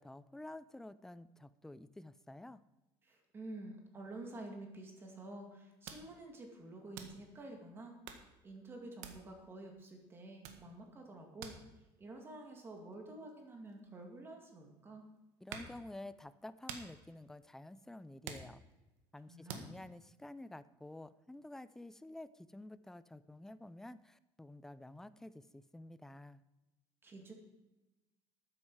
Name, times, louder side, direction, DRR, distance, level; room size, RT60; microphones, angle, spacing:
voice 1, 0.0-2.6 15.4-18.6 19.1-26.4, left 1 dB, 5° left, 14 dB, 0.4 m, -50 dB
voice 2, 3.0-11.6 12.0-15.0 19.3-19.7 27.0-27.3, right 2 dB, 20° right, 3 dB, 2.1 m, -50 dB
sound 1, 5.5-5.6 5.8-6.5 6.9-7.5 7.9-8.4 9.0-9.6 10.0-10.2 10.4-14.6 15.1-15.9 16.3-19.0 19.5-19.8, right 7 dB, 85° right, 1.7 m, -50 dB
13.0 x 9.8 x 4.7 m, 1.0 s
cardioid pair, 160°, 10 cm